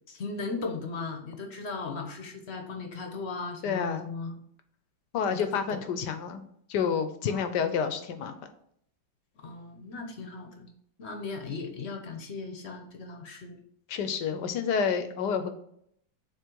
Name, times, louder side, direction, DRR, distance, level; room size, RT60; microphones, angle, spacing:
voice 1, 0.1-4.4 5.2-5.8 7.2-7.8 9.4-10.7 11.0-13.6, left 4 dB, 45° left, 3 dB, 1.0 m, -37 dB
voice 2, 3.6-4.1 5.1-8.5 13.9-15.5, left 6 dB, 70° left, 9 dB, 1.3 m, -29 dB
7.3 x 3.3 x 4.6 m, 0.69 s
omnidirectional pair, 2.0 m